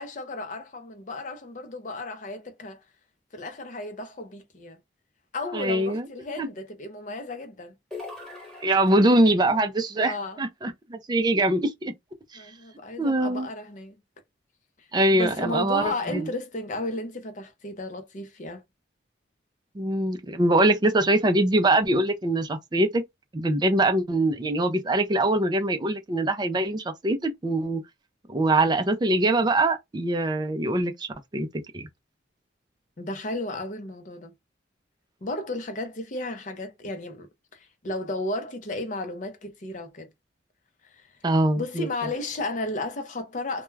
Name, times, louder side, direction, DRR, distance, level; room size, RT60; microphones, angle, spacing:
voice 1, 0.0-2.8 3.3-4.8 5.3-7.7 8.9-9.6 10.0-10.4 12.3-14.0 14.8-14.9 15.1-18.6 33.0-34.3 35.2-40.1 40.8-41.1 41.6-43.6, left 2 dB, 45° left, 0.6 m, -34 dB
voice 2, 5.5-6.0 6.4-6.5 8.6-11.9 13.0-13.5 14.9-16.3 19.8-23.0 23.3-27.8 28.3-31.5 31.7-31.9 41.2-41.9, right 1 dB, 25° right, 0.4 m, -23 dB
sound 1, 7.9-9.4, left 3 dB, 5° left, 1.0 m, -41 dB
2.2 x 2.2 x 3.1 m
head